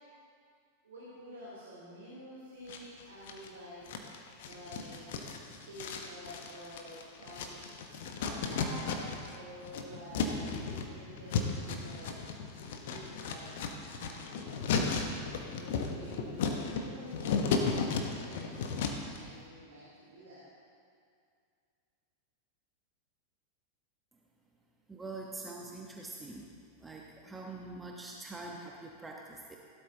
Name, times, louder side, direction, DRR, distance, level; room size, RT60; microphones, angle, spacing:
voice 1, 0.8-3.8 4.2-5.1 5.6-7.7 8.2-12.3 12.8-13.6 13.9-14.3 14.7-20.4, equal, 70° right, -8 dB, 3.3 m, -49 dB
sound 1, 2.7-3.5 3.9-9.4 9.6-19.2, left 5 dB, 55° left, 1.2 m, -35 dB
voice 2, 24.9-26.5 26.8-29.6, right 3 dB, 10° right, -1 dB, 1.2 m, -44 dB
17.0 x 12.0 x 2.9 m, 2.3 s
figure-of-eight pair, 90°, 0 cm